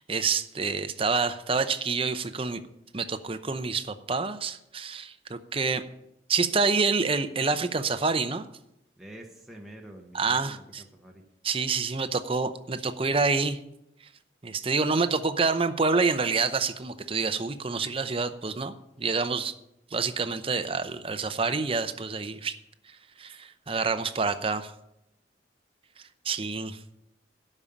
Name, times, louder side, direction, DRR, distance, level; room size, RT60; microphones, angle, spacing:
voice 1, 0.1-2.6 2.9-5.8 6.3-8.4 10.1-10.8 11.4-13.6 14.4-19.5 19.9-22.6 23.2-24.7 26.2-26.8, right 4 dB, 30° right, 10 dB, 0.7 m, -27 dB
voice 2, 9.0-11.2, right 1 dB, ahead, 0 dB, 1.1 m, -47 dB
12.5 x 5.5 x 8.7 m, 0.82 s
head